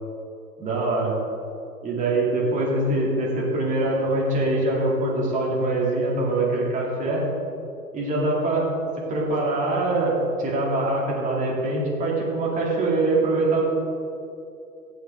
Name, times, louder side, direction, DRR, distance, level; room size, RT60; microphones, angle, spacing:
voice 1, 0.6-1.2 1.8-7.3 7.9-8.7 9.0-13.6, right 2 dB, 15° right, -4 dB, 2.5 m, -23 dB
15.5 x 7.0 x 3.5 m, 2.6 s
figure-of-eight pair, 120°, 47 cm